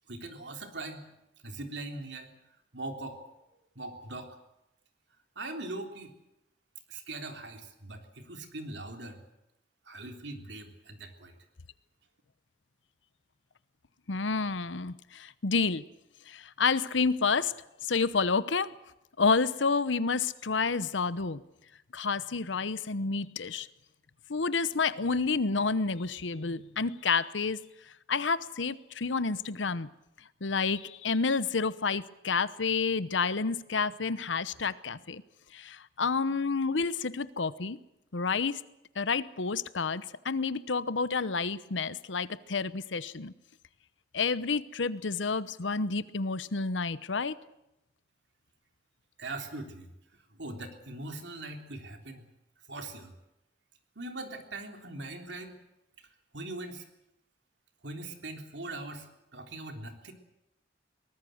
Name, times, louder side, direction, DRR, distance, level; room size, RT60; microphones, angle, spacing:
voice 1, 0.1-1.1 1.4-2.3 2.7-3.2 3.8-4.4 5.4-6.1 6.9-9.2 9.9-11.3 49.2-49.9 50.4-52.3 52.7-53.1 54.0-55.6 56.0-56.1 56.3-56.8 57.8-60.1, right 2 dB, 70° right, 5 dB, 3.5 m, -41 dB
voice 2, 14.1-15.8 16.3-17.5 17.8-18.7 19.2-21.4 21.9-23.7 24.3-27.6 28.1-29.9 30.4-35.2 35.5-37.8 38.1-38.6 39.0-43.3 44.1-47.3, left 4 dB, 85° left, 16 dB, 0.9 m, -29 dB
23.0 x 19.0 x 7.9 m, 0.89 s
head